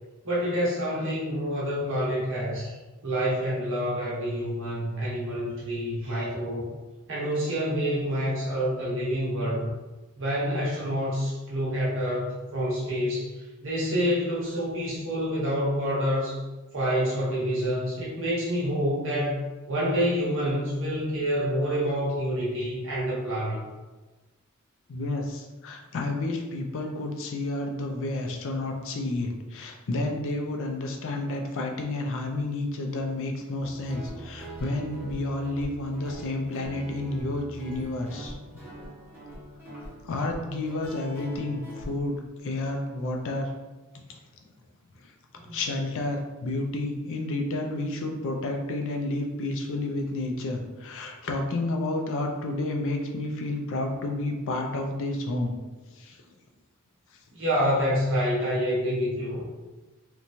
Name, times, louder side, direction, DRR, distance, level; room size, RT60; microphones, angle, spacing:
voice 1, 0.2-2.8 3.0-6.7 7.1-9.7 10.2-16.4 16.7-19.4 19.7-23.6 45.4-45.6 57.3-59.5, equal, 60° right, -6 dB, 0.9 m, -27 dB
voice 2, 24.9-38.4 40.0-43.5 44.1-44.2 45.5-55.6 56.0-56.2, left 2 dB, 60° left, 2 dB, 0.4 m, -30 dB
Guitar, 33.6-41.9, right 1 dB, 10° right, 0.9 m, -42 dB
2.9 x 2.2 x 2.6 m, 1.2 s
head